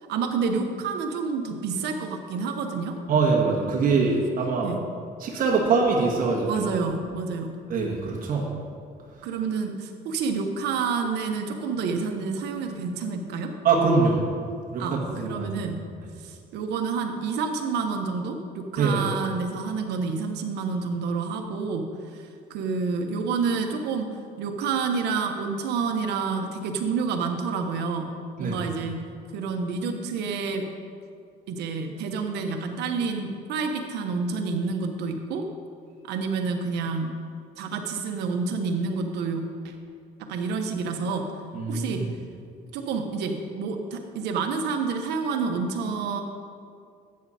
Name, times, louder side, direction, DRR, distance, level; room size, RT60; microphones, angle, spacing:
voice 1, 0.1-2.9 3.8-4.0 4.6-4.8 6.5-7.6 9.2-13.5 14.8-15.8 16.2-21.8 22.1-28.1 28.4-29.0 29.3-30.7 31.5-35.4 36.0-37.2 37.6-39.7 40.3-41.3 41.7-42.0 42.7-46.2, right 5 dB, 80° right, 4 dB, 1.2 m, -29 dB
voice 2, 3.1-4.7 5.2-6.5 7.7-8.5 13.6-14.2 14.7-15.6 18.8-19.0 28.4-28.6 41.5-42.0, right 4 dB, 55° right, -3 dB, 1.6 m, -23 dB
13.0 x 8.6 x 4.3 m, 2.3 s
cardioid pair, 110°, 17 cm